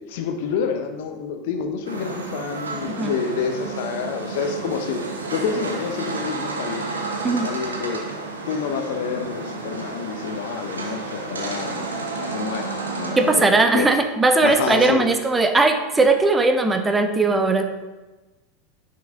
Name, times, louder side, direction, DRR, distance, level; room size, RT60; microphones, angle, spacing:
voice 1, 0.1-5.0 5.3-8.0 8.5-11.9 12.3-13.9 14.4-15.0, left 6 dB, 55° left, 6 dB, 1.0 m, -28 dB
sound 1, 1.8-13.5, right 3 dB, 80° right, 1.1 m, -31 dB
voice 2, 13.2-17.8, right 3 dB, 15° right, 7 dB, 0.8 m, -19 dB
10.5 x 5.8 x 3.8 m, 1.2 s
figure-of-eight pair, 80°, 0 cm